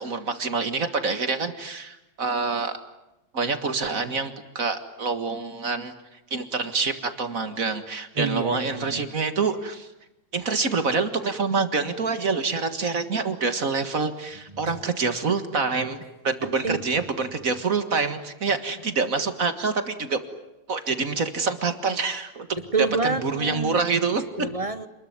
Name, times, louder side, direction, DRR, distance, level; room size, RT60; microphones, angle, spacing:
voice 1, 0.0-2.7 3.3-5.9 6.3-9.9 10.3-20.2 20.7-22.5 23.0-24.2, right 4 dB, 45° right, 9 dB, 2.0 m, -26 dB
voice 2, 8.2-9.1 14.5-14.8 16.4-16.8 22.6-23.8 24.4-24.9, right 4 dB, 25° right, 12 dB, 0.8 m, -28 dB
28.0 x 21.0 x 9.6 m, 0.95 s
omnidirectional pair, 2.0 m